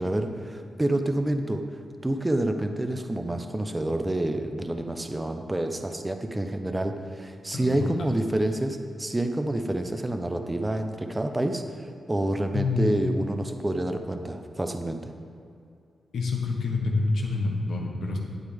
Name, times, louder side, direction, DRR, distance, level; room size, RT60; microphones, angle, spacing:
voice 1, 0.0-1.6 2.0-15.1, right 1 dB, 10° right, 6 dB, 0.6 m, -28 dB
voice 2, 7.5-8.1 12.5-12.8 13.1-13.3 16.1-18.2, left 3 dB, 80° left, 0 dB, 1.4 m, -27 dB
11.5 x 9.6 x 3.5 m, 2.5 s
wide cardioid pair, 170°, 0 cm